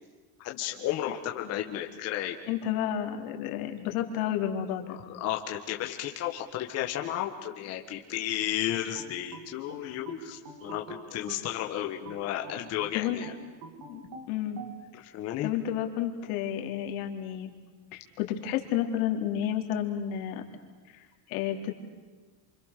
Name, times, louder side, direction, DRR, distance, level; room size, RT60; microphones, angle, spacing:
voice 1, 0.4-2.4 4.9-13.3 15.1-15.5, left 12 dB, 35° left, 2 dB, 1.6 m, -33 dB
voice 2, 2.5-5.0 9.8-10.2 12.9-13.2 13.9-14.0 14.3-14.6 14.9-15.0 15.4-17.5 17.9-20.4 20.9-21.7, left 10 dB, 80° left, 3 dB, 3.5 m, -31 dB
sound 1, 8.9-11.5 12.1-14.8, right 3 dB, 50° right, 3.8 m, -46 dB
28.5 x 26.0 x 6.7 m, 1.4 s
cardioid pair, 180°, 43 cm